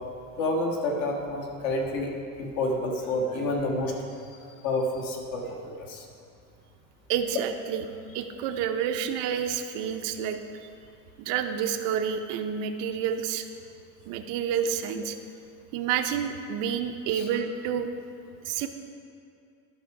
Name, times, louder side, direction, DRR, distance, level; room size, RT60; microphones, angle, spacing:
voice 1, 0.4-2.1 2.4-3.9 4.6-6.0 17.1-17.2, left 1 dB, 55° left, 1 dB, 1.5 m, -29 dB
voice 2, 7.1-7.8 8.1-10.4 11.2-13.4 14.1-15.2 15.7-17.9 18.4-18.7, right 8 dB, 55° right, 7 dB, 0.6 m, -29 dB
12.0 x 6.0 x 4.7 m, 2.4 s
cardioid pair, 165°, 37 cm